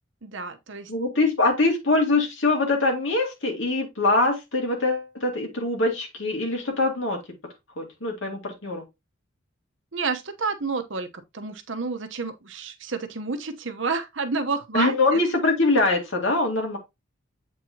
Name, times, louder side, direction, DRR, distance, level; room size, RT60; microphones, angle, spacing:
voice 1, 0.2-0.9 9.9-11.1 11.3-15.2, right 4 dB, 65° right, 1.0 m, -29 dB
voice 2, 0.9-7.4 7.8-8.8 14.7-16.8, left 2 dB, 70° left, 2.2 m, -23 dB
8.2 x 4.7 x 2.8 m
head